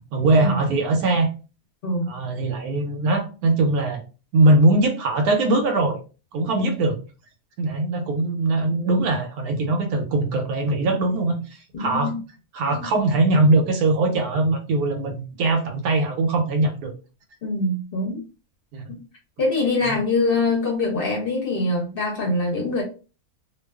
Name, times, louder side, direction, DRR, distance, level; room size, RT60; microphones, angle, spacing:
voice 1, 0.1-1.3 2.1-4.0 4.3-6.0 6.3-7.0 7.6-12.1 12.5-16.9 18.7-18.8 19.9-20.0, right 2 dB, 90° right, 4 dB, 1.1 m, -21 dB
voice 2, 1.8-2.1 6.6-6.8 11.7-12.2 12.7-12.9 17.4-18.2 18.9-19.0 19.4-22.8, left 2 dB, 55° left, 0 dB, 0.6 m, -24 dB
2.5 x 2.3 x 2.2 m, 0.33 s
omnidirectional pair, 1.6 m